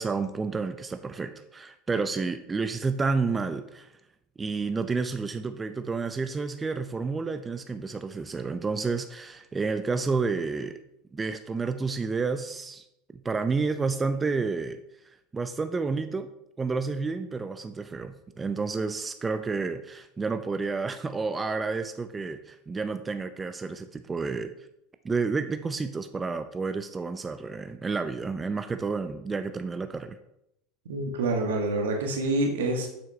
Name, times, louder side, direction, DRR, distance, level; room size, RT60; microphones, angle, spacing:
voice 1, 0.0-3.9 4.4-10.8 11.1-12.8 13.1-14.8 15.3-16.3 16.6-24.5 25.0-30.2, right 4 dB, 20° right, 10 dB, 0.4 m, -30 dB
voice 2, 30.9-32.9, right 2 dB, 80° right, 2 dB, 1.3 m, -27 dB
6.9 x 5.7 x 3.2 m, 0.84 s
hypercardioid pair, 85°, 0 cm